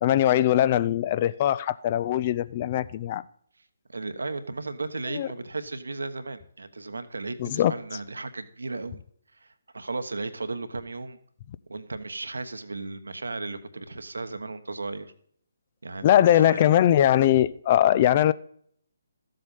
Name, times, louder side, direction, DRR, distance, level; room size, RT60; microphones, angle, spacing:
voice 1, 0.0-3.2 5.1-5.3 7.4-7.8 16.0-18.3, left 11 dB, 30° left, 0.5 m, -21 dB
voice 2, 3.9-9.0 9.4-11.2 11.7-15.1 15.8-16.7, right 3 dB, 70° right, 1.2 m, -35 dB
14.0 x 7.7 x 5.5 m
figure-of-eight pair, 140°, 0 cm